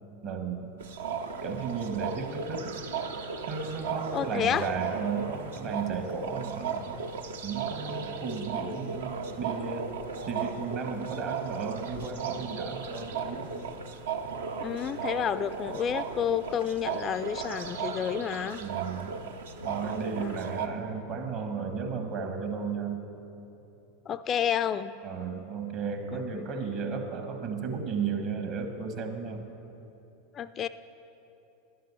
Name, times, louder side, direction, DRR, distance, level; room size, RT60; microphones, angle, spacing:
voice 1, 0.2-0.7 1.4-2.8 3.5-6.9 7.4-10.0 10.3-13.5 18.6-19.3 19.6-23.0 25.0-29.4, right 5 dB, 50° right, 5 dB, 1.3 m, -34 dB
sound 1, 0.8-20.7, right 6 dB, 75° right, 0.6 m, -36 dB
voice 2, 4.1-4.6 14.6-18.6 20.2-20.4 24.1-24.9 26.1-26.5 30.3-30.7, left 9 dB, 35° left, 13 dB, 0.3 m, -30 dB
11.0 x 7.6 x 7.0 m, 2.9 s
figure-of-eight pair, 85°, 0 cm